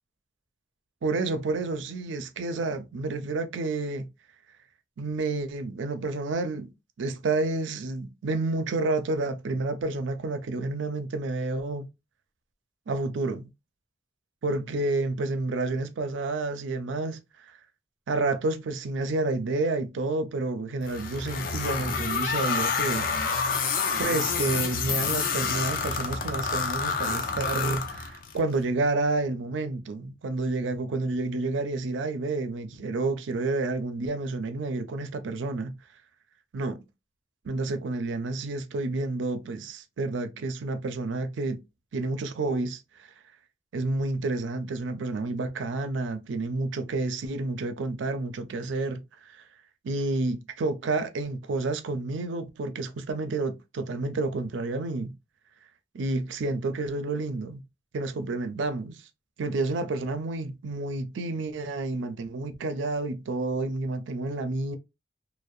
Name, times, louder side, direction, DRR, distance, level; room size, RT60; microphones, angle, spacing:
voice 1, 1.0-4.1 5.0-6.7 7.0-11.9 12.9-13.5 14.4-17.2 18.1-23.5 24.0-35.8 36.5-36.8 37.4-41.6 41.9-42.8 43.7-49.0 49.8-55.1 55.9-57.6 57.9-59.0 59.4-64.8, right 3 dB, 85° right, 0.4 m, -30 dB
sound 1, 20.9-28.4, left 5 dB, 50° left, 0.4 m, -28 dB
2.6 x 2.0 x 2.3 m
head